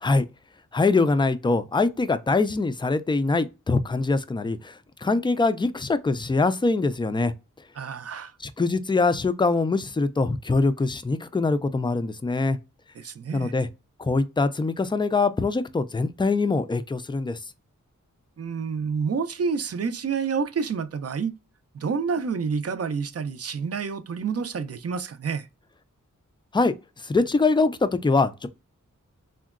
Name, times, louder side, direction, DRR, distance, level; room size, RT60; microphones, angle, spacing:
voice 1, 0.7-7.3 8.4-12.6 13.3-13.7 14.0-17.4 26.5-26.7 27.0-28.5, left 3 dB, 15° left, 0.3 m, -23 dB
voice 2, 7.8-8.3 13.0-13.5 18.4-21.3 21.7-25.5, right 5 dB, 50° right, 0.4 m, -28 dB
3.7 x 2.1 x 2.3 m
wide cardioid pair, 80°, 32 cm